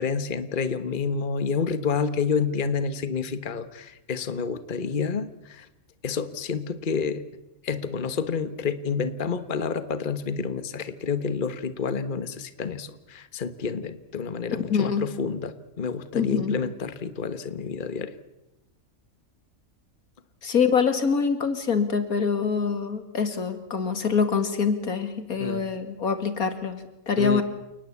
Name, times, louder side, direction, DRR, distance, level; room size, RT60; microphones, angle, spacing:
voice 1, 0.0-5.7 6.0-7.2 7.6-18.1 25.4-25.7 27.2-27.4, left 5 dB, 35° left, 12 dB, 1.4 m, -29 dB
voice 2, 14.7-15.0 16.1-16.6 20.4-26.8 27.1-27.4, left 5 dB, 80° left, 10 dB, 2.7 m, -25 dB
29.0 x 19.5 x 8.4 m, 0.94 s
omnidirectional pair, 1.5 m